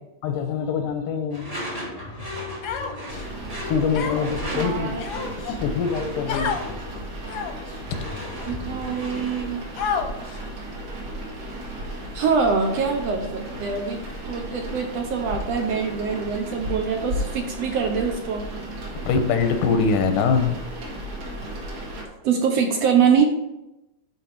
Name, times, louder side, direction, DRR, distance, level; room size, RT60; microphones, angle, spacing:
voice 1, 0.2-1.5 1.9-2.3 3.7-5.0 5.4-6.6 7.9-8.0 18.9-20.6, left 5 dB, 85° left, 7 dB, 2.5 m, -24 dB
Door / Screech, 1.3-9.5, left 1 dB, 20° right, 1.2 m, -36 dB
Human voice, 2.6-3.2 3.9-4.4 5.0-5.6 6.3-6.6 7.3-7.7 8.4-8.5 9.8-10.4, left 6 dB, 65° left, 1.6 m, -29 dB
sound 1, 3.1-22.0, equal, 55° right, 2.9 m, -35 dB
voice 2, 4.5-5.0 8.4-9.6 12.1-18.4 22.2-23.2, right 6 dB, 70° right, 3 dB, 1.7 m, -24 dB
11.0 x 4.6 x 4.9 m, 0.93 s
omnidirectional pair, 3.6 m